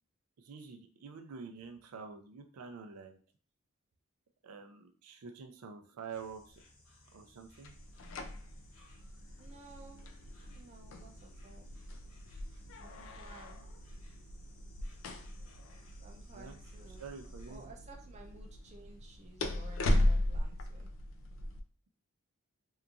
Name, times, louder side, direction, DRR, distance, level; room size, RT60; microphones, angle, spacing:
voice 1, 0.4-3.2 4.4-6.6 7.1-7.8 16.3-16.6 17.0-17.7, right 5 dB, 90° right, 5 dB, 0.4 m, -47 dB
Insect, 6.1-17.6, left 1 dB, 85° left, 1.0 m, -61 dB
sound 1, 7.6-21.6, left 1 dB, 65° left, 0.4 m, -37 dB
voice 2, 9.0-10.2 10.5-11.7 12.8-13.7 16.0-17.1 17.5-20.9, right 3 dB, 30° right, 1 dB, 0.4 m, -55 dB
2.8 x 2.3 x 2.4 m, 0.42 s
head